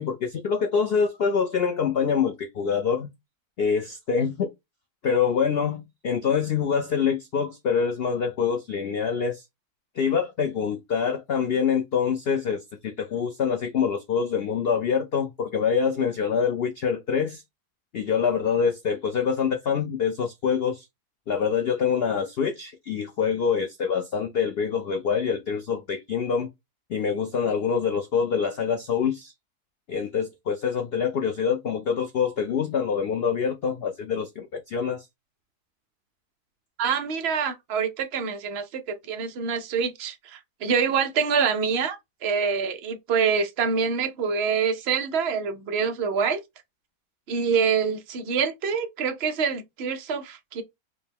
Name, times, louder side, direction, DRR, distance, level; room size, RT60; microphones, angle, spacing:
voice 1, 0.0-3.1 3.6-4.5 5.0-9.4 10.0-17.4 17.9-20.9 21.3-26.5 26.9-29.3 29.9-35.1, left 6 dB, 80° left, 0.5 m, -25 dB
voice 2, 36.8-46.4 47.3-50.6, right 6 dB, 50° right, 0.8 m, -26 dB
5.1 x 2.1 x 3.4 m
omnidirectional pair, 1.7 m